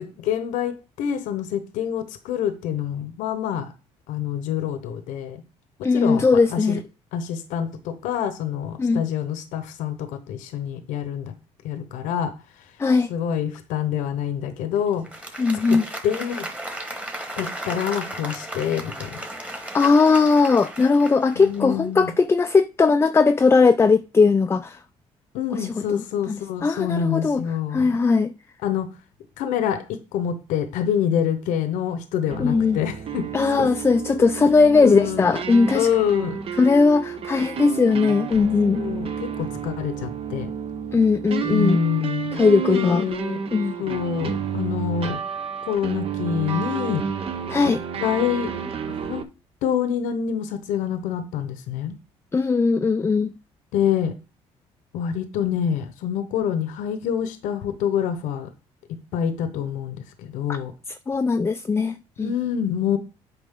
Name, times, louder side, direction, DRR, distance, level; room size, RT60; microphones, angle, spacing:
voice 1, 0.0-3.7 4.1-5.4 5.8-6.8 7.1-11.3 11.6-12.7 13.1-15.1 15.7-16.5 17.4-19.2 21.3-22.1 25.3-28.0 28.6-28.9 29.4-33.3 33.6-33.9 34.7-35.3 35.7-36.4 38.7-40.5 41.5-43.4 43.8-45.2 45.6-47.0 47.6-47.7 48.0-48.5 48.9-49.3 49.6-52.0 53.7-54.1 54.9-58.5 59.1-60.7 62.2-63.0, left 8 dB, 80° left, 1.0 m, -26 dB
voice 2, 5.8-6.8 8.8-9.0 12.8-13.1 15.4-15.8 19.5-24.8 25.6-27.4 27.7-28.3 32.4-32.8 33.3-35.9 36.6-38.8 40.9-41.8 42.3-43.0 43.5-43.7 47.5-47.8 52.3-53.3 61.1-62.3, left 4 dB, 20° left, 0.4 m, -19 dB
Applause, 14.9-21.9, right 1 dB, 10° right, 1.6 m, -35 dB
sound 1, 32.3-49.2, right 7 dB, 50° right, 0.9 m, -31 dB
8.2 x 5.0 x 3.7 m
supercardioid pair, 80°, 13 cm